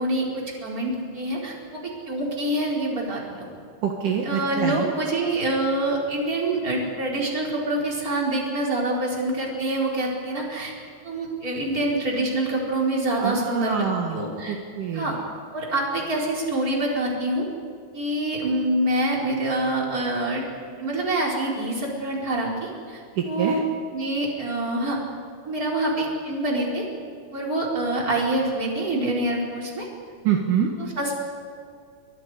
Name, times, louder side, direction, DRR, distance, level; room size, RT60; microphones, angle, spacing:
voice 1, 0.0-3.5 4.2-10.7 11.0-14.6 14.9-15.2 15.5-17.5 17.9-23.6 23.9-25.0 25.4-26.9 27.3-29.9 30.8-31.2, right 1 dB, 20° right, -2 dB, 4.1 m, -26 dB
voice 2, 3.8-4.9 13.2-15.1 23.2-23.6 30.2-30.7, right 8 dB, 70° right, 1 dB, 2.0 m, -25 dB
29.5 x 23.5 x 5.0 m, 2.2 s
omnidirectional pair, 5.9 m